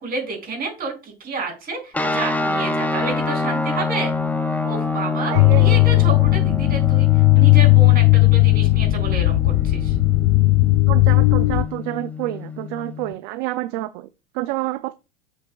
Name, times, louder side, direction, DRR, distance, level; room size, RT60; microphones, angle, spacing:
voice 1, 0.0-4.1 4.6-9.9, right 3 dB, 30° right, 3.7 m, -30 dB
sound 1, 1.9-13.1, left 4 dB, 5° left, 0.6 m, -26 dB
voice 2, 5.3-5.8 10.9-14.1 14.3-14.9, right 17 dB, 60° right, 0.5 m, -28 dB
sound 2, 5.4-11.6, left 22 dB, 60° left, 0.5 m, -16 dB
8.0 x 5.3 x 2.4 m
supercardioid pair, 115°, 30 cm